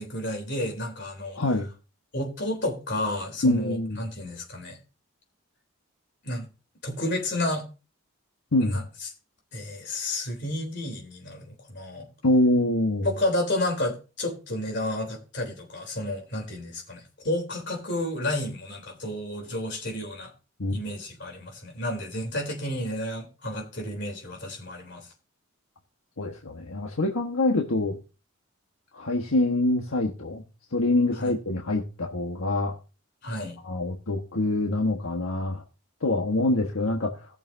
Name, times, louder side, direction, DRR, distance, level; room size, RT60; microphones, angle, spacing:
voice 1, 0.0-1.4 2.1-4.8 6.2-6.5 6.8-7.6 8.6-9.1 9.5-12.1 13.0-20.3 20.7-25.1 31.2-31.3 33.2-33.6, left 1 dB, 50° left, 3.6 m, -31 dB
voice 2, 1.4-1.7 3.4-4.0 8.5-8.8 12.2-13.1 20.6-20.8 26.2-28.0 28.9-30.4 30.7-32.7 33.6-35.6 36.0-37.1, left 2 dB, 75° left, 1.4 m, -25 dB
19.0 x 6.8 x 2.7 m
head